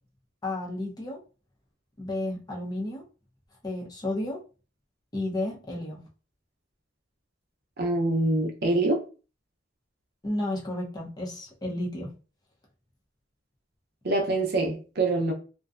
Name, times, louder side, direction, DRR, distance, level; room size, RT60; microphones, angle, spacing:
voice 1, 0.4-1.2 2.0-3.0 3.6-4.4 5.1-6.0 10.2-12.1, left 1 dB, 20° left, -2 dB, 0.7 m, -32 dB
voice 2, 7.8-9.0 14.0-15.3, right 2 dB, 55° right, 2 dB, 0.6 m, -25 dB
2.5 x 2.1 x 2.4 m, 0.34 s
head